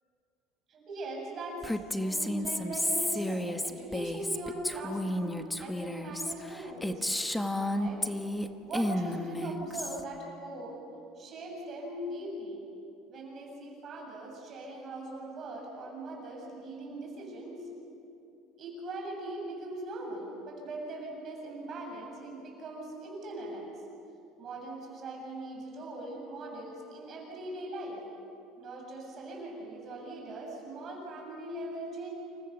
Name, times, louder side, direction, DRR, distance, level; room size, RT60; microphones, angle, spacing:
voice 1, 0.7-7.0 7.5-8.1 8.6-10.8 11.2-12.6 13.1-17.6 18.6-23.7 24.4-28.0 28.6-32.1, right 1 dB, 30° right, 0 dB, 7.6 m, -40 dB
Female speech woman speaking, 1.6-8.5 8.7-10.0, left 1 dB, 5° left, 1.0 m, -32 dB
29.0 x 28.5 x 7.0 m, 2.8 s
cardioid pair, 175°, 0 cm